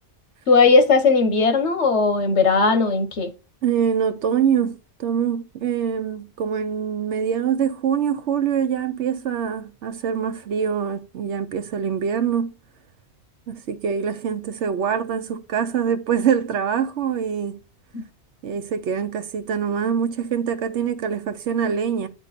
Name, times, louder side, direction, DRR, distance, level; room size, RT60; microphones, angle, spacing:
voice 1, 0.5-3.3, left 4 dB, 80° left, 1.4 m, -17 dB
voice 2, 3.6-12.5 13.5-17.6 18.4-22.1, right 7 dB, 85° right, 1.1 m, -24 dB
9.3 x 4.5 x 4.2 m
omnidirectional pair, 1.2 m